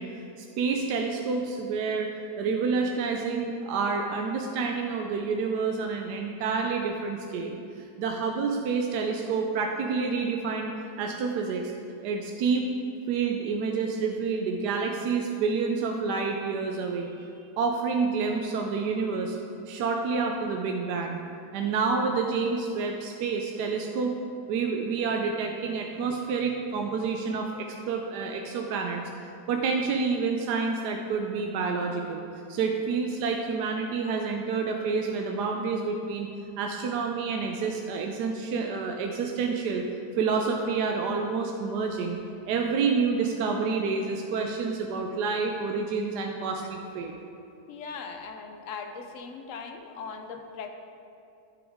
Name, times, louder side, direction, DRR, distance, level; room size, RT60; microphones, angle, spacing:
voice 1, 0.0-11.7 12.0-12.7 13.1-17.1 17.6-19.4 19.7-21.2 21.5-24.1 24.5-29.0 29.5-36.3 36.6-39.9 40.2-42.2 42.5-47.1, right 5 dB, 75° right, 2 dB, 1.1 m, -28 dB
voice 2, 47.7-50.7, left 5 dB, 65° left, 6 dB, 0.8 m, -39 dB
11.0 x 7.1 x 3.6 m, 2.6 s
omnidirectional pair, 1.9 m